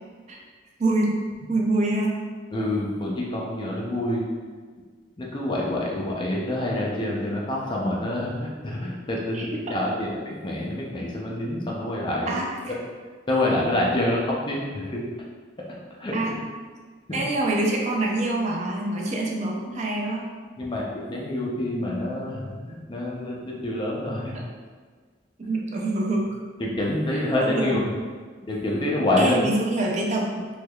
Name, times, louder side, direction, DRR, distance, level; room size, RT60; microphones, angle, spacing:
voice 1, 0.8-1.1 1.5-2.2 9.3-9.5 12.3-12.8 16.1-16.3 17.1-20.2 24.3-24.4 25.4-26.2 27.4-27.9 29.2-30.5, right 2 dB, 40° right, -1 dB, 0.4 m, -25 dB
voice 2, 2.5-4.3 5.2-12.3 13.3-15.0 16.0-16.2 17.1-17.2 20.6-24.3 26.6-27.8 28.4-29.4, left 1 dB, 25° left, -3 dB, 0.5 m, -27 dB
3.3 x 3.1 x 2.3 m, 1.5 s
head